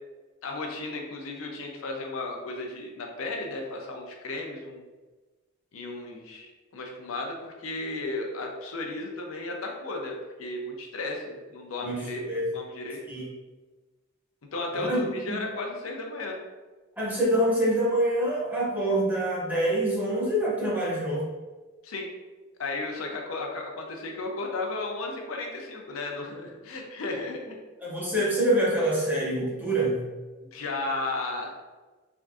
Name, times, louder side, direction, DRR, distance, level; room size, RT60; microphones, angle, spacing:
voice 1, 0.4-4.8 5.7-12.2 12.5-13.0 14.5-16.4 21.8-22.1 22.6-27.6 30.4-31.5, left 2 dB, 80° left, 1 dB, 0.5 m, -34 dB
voice 2, 17.0-21.2 27.8-30.1, right 1 dB, 10° right, -5 dB, 0.8 m, -25 dB
3.5 x 2.6 x 2.3 m, 1.2 s
head